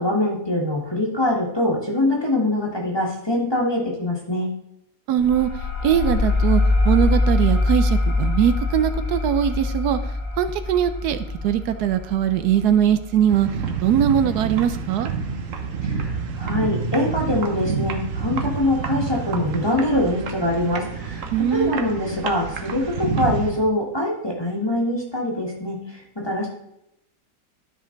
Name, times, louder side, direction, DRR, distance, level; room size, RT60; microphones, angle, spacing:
voice 1, 0.0-4.5 15.8-26.5, left 1 dB, 15° left, -2 dB, 1.7 m, -24 dB
voice 2, 5.1-5.5 5.8-10.0 10.4-13.5 13.8-15.1 21.3-21.8, right 10 dB, 80° right, 11 dB, 1.1 m, -21 dB
sound 1, 5.2-14.4, left 2 dB, 75° left, 2.7 m, -23 dB
sound 2, 13.3-23.5, right 5 dB, 55° right, 1.2 m, -28 dB
12.5 x 5.2 x 3.9 m, 0.81 s
omnidirectional pair, 1.7 m